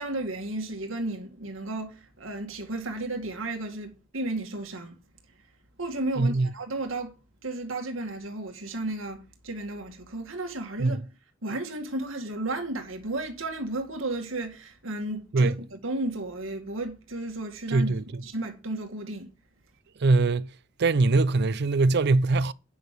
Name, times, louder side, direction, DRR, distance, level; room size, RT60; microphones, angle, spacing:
voice 1, 0.0-5.0 5.8-7.2 7.4-11.0 11.4-17.9 18.2-19.3, right 2 dB, 85° right, 2.1 m, -33 dB
voice 2, 6.2-6.5 10.8-11.0 15.3-15.5 17.7-18.0 20.0-20.5 20.8-22.5, right 3 dB, 55° right, 0.5 m, -22 dB
9.3 x 6.3 x 6.7 m
head